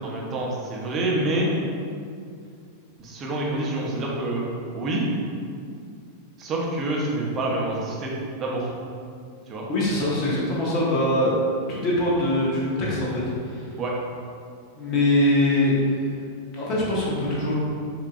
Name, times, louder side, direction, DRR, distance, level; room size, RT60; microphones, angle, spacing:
voice 1, 0.0-1.5 3.0-4.4 4.7-5.1 6.4-8.7 9.5-9.7 13.8-13.9, right 2 dB, 30° right, -3 dB, 0.9 m, -27 dB
voice 2, 9.7-11.3 11.7-13.7 14.8-16.1 16.5-17.5, left 1 dB, 35° left, -6 dB, 1.2 m, -23 dB
6.7 x 2.8 x 2.4 m, 2.3 s
figure-of-eight pair, 90°, 0 cm